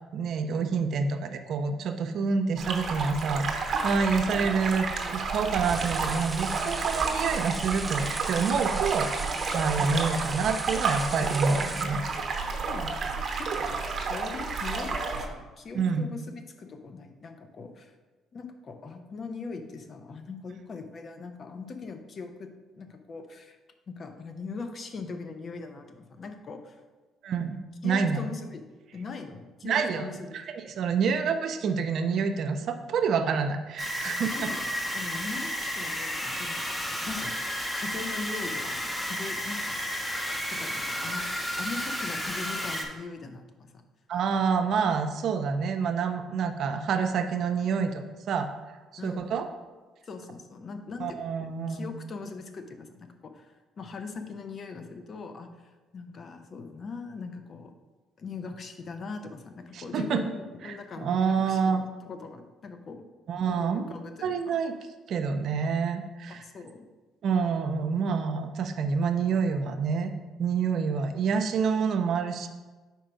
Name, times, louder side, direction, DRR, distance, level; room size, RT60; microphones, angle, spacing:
voice 1, 0.1-4.9 5.1-9.1 9.5-12.0 15.7-16.0 27.2-27.6 27.8-28.2 29.6-30.1 30.5-34.5 44.1-48.5 49.0-49.5 51.0-51.9 59.7-60.2 60.6-61.8 63.3-63.9 64.2-64.7 65.1-66.4 67.2-70.1 70.4-72.5, right 5 dB, 65° right, 7 dB, 0.5 m, -27 dB
sound 1, 2.6-15.3, right 4 dB, 50° right, 0.9 m, -31 dB
sound 2, 5.6-11.9, right 2 dB, 15° right, 0.4 m, -39 dB
voice 2, 12.5-17.9 18.3-22.5 22.7-23.6 23.9-26.8 27.8-28.7 28.9-30.3 34.3-36.6 37.0-37.3 37.7-39.8 40.5-43.7 49.0-49.4 50.0-57.7 58.2-63.0 63.5-64.6 66.3-66.9, left 4 dB, 50° left, 6 dB, 0.7 m, -40 dB
sound 3, 33.8-42.8, equal, 10° left, 1.0 m, -32 dB
4.6 x 4.4 x 5.2 m, 1.2 s
supercardioid pair, 75°, 0 cm